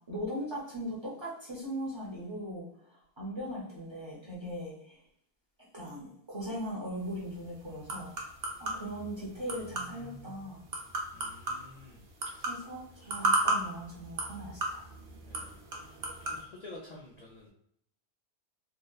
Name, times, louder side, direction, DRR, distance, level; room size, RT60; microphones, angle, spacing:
voice 1, 0.1-2.6 3.2-5.0 5.7-8.1 8.6-10.6 12.5-14.9, equal, 30° right, -5 dB, 0.6 m, -39 dB
sound 1, 7.0-16.4, right 2 dB, 75° right, 0.9 m, -36 dB
voice 2, 11.1-12.5 13.0-13.1 15.3-15.6 16.0-17.5, left 2 dB, 55° left, -4 dB, 0.4 m, -50 dB
2.8 x 2.0 x 2.2 m, 0.69 s
omnidirectional pair, 1.1 m